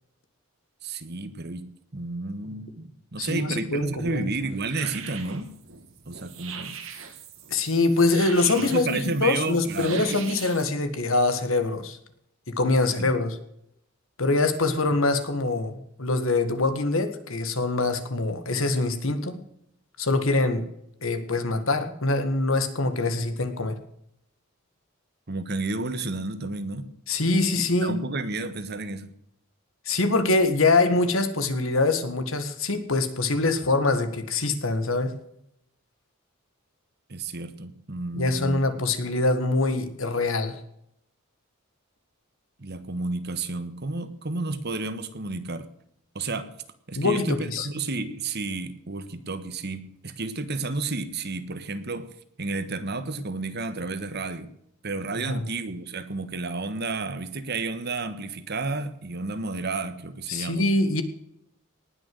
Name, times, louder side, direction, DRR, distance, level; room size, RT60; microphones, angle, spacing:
voice 1, 0.8-5.5 6.1-6.7 8.5-10.4 13.0-13.1 25.3-26.9 27.8-29.1 37.1-38.8 42.6-45.7 46.1-46.5 46.9-52.1 52.4-54.5 54.8-60.7, right 3 dB, 50° right, 11 dB, 1.4 m, -31 dB
voice 2, 3.2-4.3 7.5-12.0 12.5-13.4 14.2-15.7 16.0-19.4 20.0-20.7 21.0-23.8 27.1-28.0 29.9-35.1 38.2-40.6 47.0-47.7 55.3-55.4 60.3-61.0, left 2 dB, 70° left, 10 dB, 1.8 m, -24 dB
sound 1, 3.8-10.6, right 7 dB, 70° right, 2.3 m, -41 dB
19.0 x 6.6 x 7.8 m, 0.75 s
head